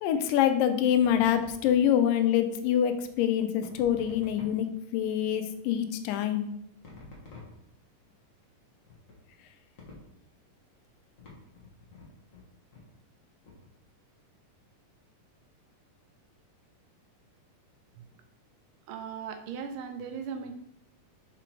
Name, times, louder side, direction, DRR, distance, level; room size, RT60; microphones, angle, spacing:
voice 1, 0.0-4.7 4.9-6.5, left 10 dB, 85° left, 8 dB, 2.2 m, -25 dB
sound 1, 1.0-1.9 3.6-4.7 6.8-7.9 8.9-9.2 9.8-10.2 11.2-12.5 12.7-12.9 13.4-13.7, left 3 dB, 55° left, 0.8 m, -49 dB
voice 2, 18.9-20.5, right 6 dB, 80° right, 6 dB, 2.1 m, -38 dB
5.8 x 3.7 x 4.5 m, 0.75 s
omnidirectional pair, 3.8 m